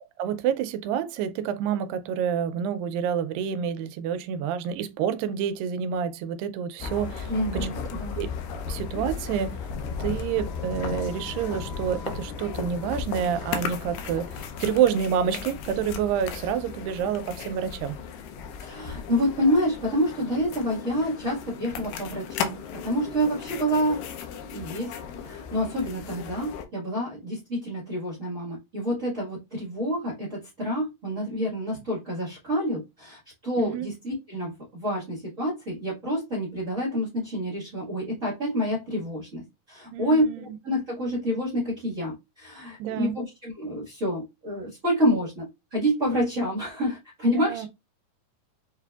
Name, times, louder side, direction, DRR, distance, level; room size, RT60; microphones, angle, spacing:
voice 1, 0.2-7.9 8.2-8.3 8.7-9.6 10.0-18.0 33.6-33.9 39.9-40.6 42.8-43.2 47.3-47.7, right 8 dB, 85° right, 2.3 m, -28 dB
sound 1, 6.8-26.6, left 6 dB, 80° left, 2.3 m, -35 dB
voice 2, 7.3-8.2 18.6-24.0 24.5-24.9 25.2-45.4 45.7-47.7, equal, 55° right, 0.8 m, -28 dB
6.5 x 2.5 x 2.3 m
omnidirectional pair, 4.0 m